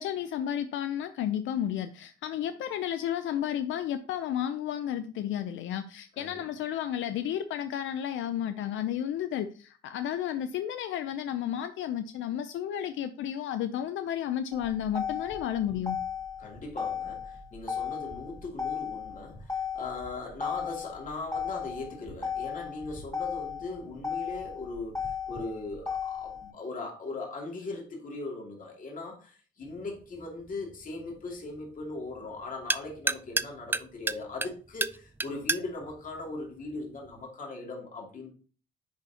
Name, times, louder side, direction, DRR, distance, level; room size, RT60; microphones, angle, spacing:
voice 1, 0.0-16.0, left 10 dB, 80° left, 0.5 m, -32 dB
Motor vehicle (road), 14.5-26.5, left 7 dB, 15° left, 2.4 m, -35 dB
voice 2, 16.4-38.3, left 3 dB, 40° left, 2.6 m, -39 dB
sound 1, 29.6-37.2, right 3 dB, 10° right, 0.3 m, -35 dB
10.5 x 4.2 x 2.8 m
cardioid pair, 90°, 20 cm